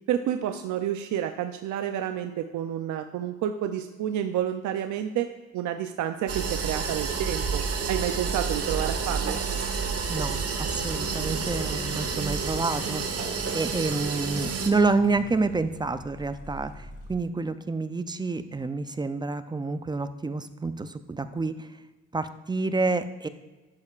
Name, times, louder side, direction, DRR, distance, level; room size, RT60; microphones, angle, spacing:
voice 1, 0.1-5.3 5.5-9.4, right 10 dB, 75° right, 7 dB, 0.5 m, -29 dB
sound 1, 6.3-14.7, right 5 dB, 50° right, 1.3 m, -29 dB
voice 2, 10.1-21.8 22.1-23.3, right 3 dB, 15° right, 11 dB, 0.4 m, -28 dB
sound 2, 10.7-17.2, left 2 dB, 55° left, 2.2 m, -44 dB
11.5 x 6.6 x 2.4 m, 1.3 s
cardioid pair, 90°, 30 cm